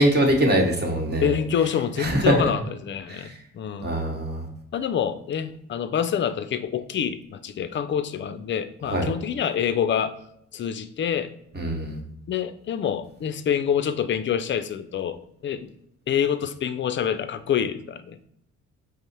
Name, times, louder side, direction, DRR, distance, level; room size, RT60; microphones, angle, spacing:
voice 1, 0.0-1.4 2.0-2.4 3.1-3.4 3.8-4.5 8.9-9.1 11.5-12.0, right 1 dB, 35° right, 2 dB, 1.2 m, -22 dB
voice 2, 1.2-3.9 4.7-10.1 10.5-11.3 12.3-15.7 16.1-18.2, left 8 dB, 40° left, 12 dB, 0.4 m, -26 dB
5.2 x 2.1 x 4.5 m, 0.76 s
cardioid pair, 90°, 30 cm